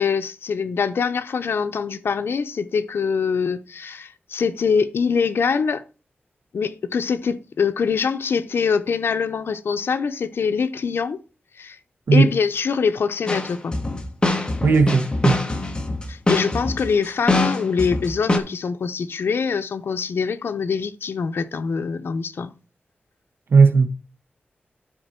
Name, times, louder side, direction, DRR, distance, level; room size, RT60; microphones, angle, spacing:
voice 1, 0.0-5.8 6.5-11.2 11.6-11.8 12.1-13.7 16.1-22.5, left 5 dB, 80° left, 0.7 m, -24 dB
sound 1, 13.3-18.4, left 2 dB, 25° left, 1.1 m, -23 dB
voice 2, 14.6-15.4 23.5-23.9, right 4 dB, 70° right, 1.2 m, -15 dB
11.5 x 4.4 x 4.3 m
wide cardioid pair, 150°, 4 cm